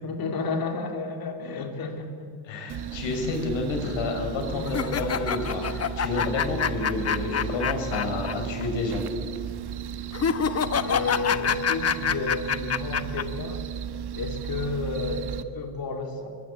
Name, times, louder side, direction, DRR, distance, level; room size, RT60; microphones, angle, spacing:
voice 1, 0.0-2.3 3.1-3.5 4.5-5.0 10.8-13.6 14.1-16.3, left 4 dB, 50° left, 4 dB, 3.7 m, -32 dB
voice 2, 2.4-9.0, left 3 dB, 80° left, 3 dB, 6.2 m, -30 dB
sound 1, 2.7-15.4, right 9 dB, 55° right, 1.4 m, -35 dB
sound 2, 4.7-8.3 8.6-8.7 10.1-13.2, left 7 dB, 35° left, 1.1 m, -26 dB
22.0 x 20.0 x 8.8 m, 2.4 s
cardioid pair, 95°, 45 cm